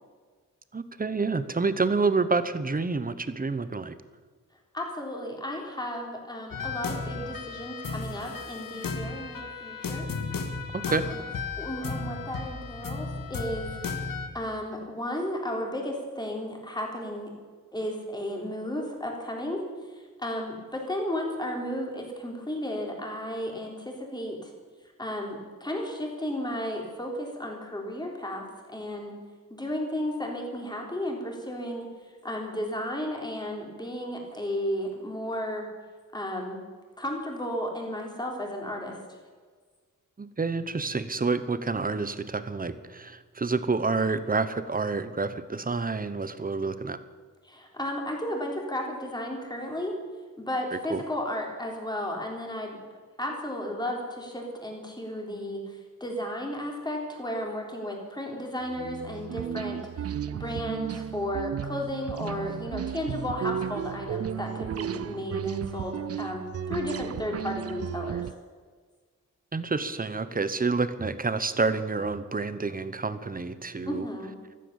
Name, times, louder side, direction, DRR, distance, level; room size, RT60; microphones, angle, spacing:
voice 1, 0.7-4.0 10.7-11.0 40.2-47.0 50.7-51.0 69.5-74.0, right 4 dB, 25° right, 13 dB, 0.9 m, -28 dB
voice 2, 4.7-10.1 10.9-11.2 11.6-13.7 14.3-17.3 17.7-19.6 19.9-24.5 25.0-29.2 29.5-31.9 32.2-35.7 36.1-36.6 37.0-39.0 47.4-50.0 50.4-52.8 53.2-68.3 73.9-74.4, left 1 dB, 10° left, 0 dB, 3.6 m, -34 dB
sound 1, 6.5-14.3, left 4 dB, 80° left, 1.8 m, -34 dB
sound 2, 58.7-68.3, right 9 dB, 45° right, 0.4 m, -34 dB
14.5 x 14.0 x 7.1 m, 1.5 s
wide cardioid pair, 165°, 33 cm